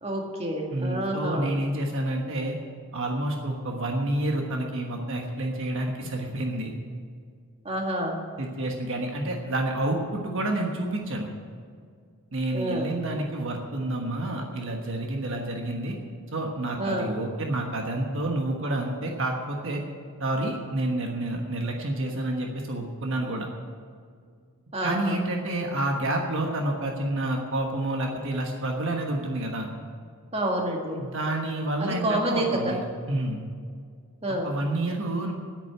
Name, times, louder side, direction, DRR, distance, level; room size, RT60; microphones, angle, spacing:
voice 1, 0.0-1.5 7.7-8.2 12.5-12.9 16.8-17.1 24.7-25.2 30.3-31.0 31.8-32.7 34.2-34.5, right 1 dB, 30° right, 0 dB, 1.9 m, -28 dB
voice 2, 0.7-2.6 2.9-6.7 8.4-11.3 12.3-16.0 16.3-19.8 20.2-23.5 24.8-29.7 31.0-32.8 33.1-33.4 34.4-35.3, right 1 dB, 60° right, 1 dB, 1.3 m, -29 dB
9.8 x 9.0 x 9.7 m, 2.1 s
head